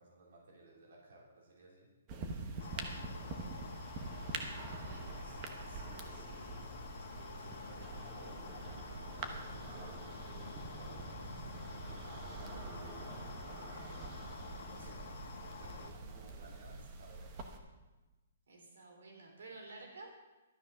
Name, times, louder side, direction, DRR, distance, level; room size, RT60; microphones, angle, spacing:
voice 1, 0.0-1.9 2.2-3.8 4.6-6.6 7.0-9.7 10.2-14.1 14.6-15.0 15.5-17.8, right 1 dB, 60° right, -3 dB, 3.2 m, -58 dB
sound 1, 2.1-17.6, right 3 dB, 25° right, 1.0 m, -45 dB
voice 2, 2.4-2.7 4.4-5.1 18.5-20.3, right 3 dB, 85° right, 1 dB, 3.2 m, -53 dB
sound 2, 2.6-15.9, left 4 dB, 55° left, 1.6 m, -49 dB
12.5 x 8.8 x 5.6 m, 1.1 s
hypercardioid pair, 175°, 0 cm